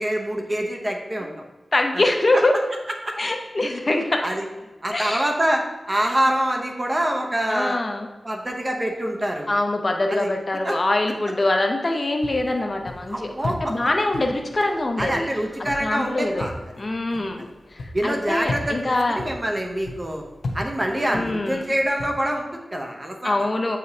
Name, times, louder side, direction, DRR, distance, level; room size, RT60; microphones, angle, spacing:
voice 1, 0.0-1.5 1.9-2.0 2.3-2.4 3.0-3.1 4.2-4.5 4.8-7.8 8.2-9.5 10.1-10.3 10.6-10.8 13.1-13.7 15.0-16.5 17.9-20.2 20.5-23.3, right 1 dB, 25° right, 2 dB, 0.8 m, -25 dB
voice 2, 1.7-2.6 3.2-4.3 4.9-5.2 7.5-8.1 9.5-15.3 15.8-16.5 16.8-17.5 17.7-19.2 21.1-21.7 23.2-23.8, left 2 dB, 40° left, 3 dB, 0.6 m, -24 dB
sound 1, 12.2-22.2, left 2 dB, 85° left, 0.9 m, -36 dB
7.8 x 4.9 x 2.8 m, 1.1 s
wide cardioid pair, 95°, 0 cm